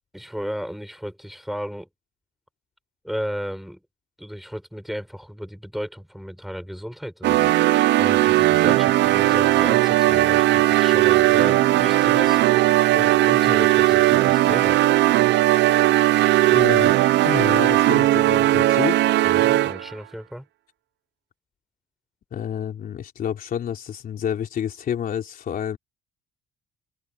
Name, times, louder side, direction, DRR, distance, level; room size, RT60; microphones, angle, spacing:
voice 1, 0.1-1.9 3.0-3.8 4.2-7.5 8.0-12.4 12.9-14.8 19.2-20.5, equal, ahead, 6.1 m, -33 dB
sound 1, 7.2-19.9, right 15 dB, 80° right, 0.7 m, -18 dB
voice 2, 16.5-16.9 17.2-19.0 22.3-25.8, left 9 dB, 55° left, 3.5 m, -29 dB
cardioid pair, 140°, 18 cm